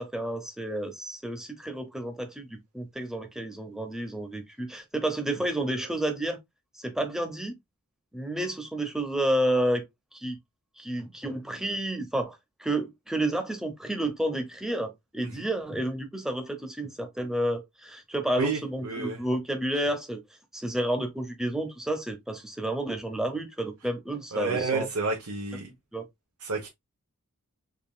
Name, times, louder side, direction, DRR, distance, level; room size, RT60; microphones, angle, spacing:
voice 1, 0.0-6.4 6.7-7.6 8.1-9.8 10.1-10.4 10.8-20.2 20.5-24.9 25.9-26.1, right 1 dB, ahead, 0.7 m, -30 dB
voice 2, 18.4-19.2 24.3-25.7 26.4-26.7, right 4 dB, 75° right, 0.9 m, -30 dB
3.7 x 3.6 x 2.3 m
head